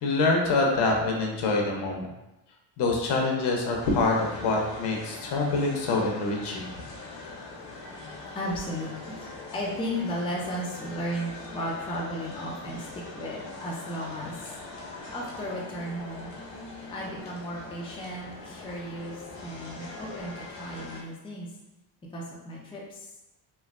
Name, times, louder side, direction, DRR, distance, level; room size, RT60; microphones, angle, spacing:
voice 1, 0.0-2.1 2.8-6.7, left 3 dB, 65° left, 0 dB, 0.8 m, -25 dB
sound 1, 3.8-21.0, left 3 dB, 85° left, 1.0 m, -42 dB
voice 2, 8.3-14.5 15.1-16.3 16.9-21.5 22.1-23.1, equal, 10° left, -4 dB, 0.5 m, -35 dB
3.2 x 2.5 x 2.4 m, 0.94 s
cardioid pair, 115°, 44 cm